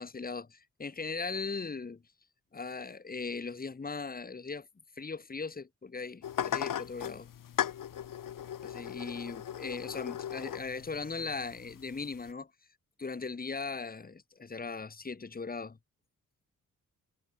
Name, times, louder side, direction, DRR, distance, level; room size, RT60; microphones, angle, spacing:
voice 1, 0.0-2.0 2.5-4.7 5.0-7.3 8.6-12.5 13.0-15.8, left 4 dB, 25° left, 3.4 m, -39 dB
sound 1, 6.2-12.3, left 10 dB, 75° left, 3.4 m, -38 dB
wide cardioid pair, 135°, 33 cm